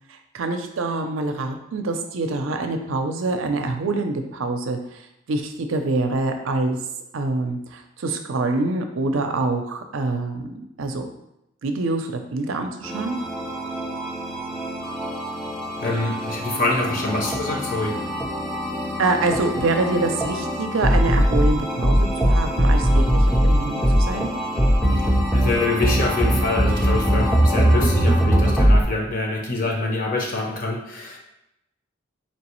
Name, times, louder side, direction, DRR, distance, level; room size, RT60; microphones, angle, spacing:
voice 1, 0.1-6.8 7.1-11.1 11.6-13.2 19.0-24.3, right 2 dB, 80° right, 5 dB, 0.5 m, -25 dB
sound 1, 12.8-28.8, equal, ahead, 0.4 m, -21 dB
voice 2, 15.8-18.0 24.9-31.2, left 2 dB, 40° left, 0 dB, 0.7 m, -25 dB
4.4 x 3.1 x 3.0 m, 0.85 s
head